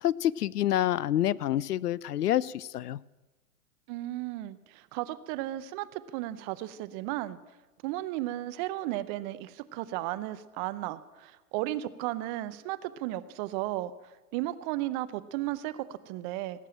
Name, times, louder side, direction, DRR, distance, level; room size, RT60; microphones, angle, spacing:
voice 1, 0.0-3.0, left 12 dB, 80° left, 23 dB, 0.6 m, -27 dB
voice 2, 3.9-7.4 7.8-13.9 14.3-16.7, right 15 dB, 30° right, 15 dB, 0.6 m, -34 dB
18.0 x 7.5 x 8.8 m, 1.2 s
hypercardioid pair, 110°, 46 cm